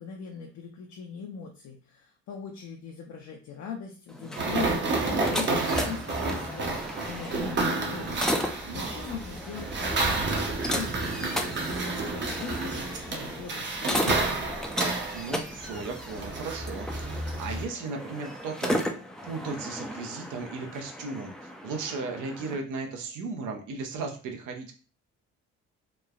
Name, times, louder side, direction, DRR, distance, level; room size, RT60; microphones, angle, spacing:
voice 1, 0.0-11.3 11.8-14.5, left 6 dB, 65° left, 1 dB, 0.5 m, -41 dB
sound 1, 4.1-22.6, equal, ahead, 0.3 m, -35 dB
sound 2, 4.4-17.6, right 3 dB, 40° right, 0.7 m, -30 dB
voice 2, 8.6-8.9 15.1-18.9 19.2-24.7, right 4 dB, 85° right, 3 dB, 0.7 m, -36 dB
3.1 x 2.1 x 2.3 m, 0.37 s
cardioid pair, 90°, 30 cm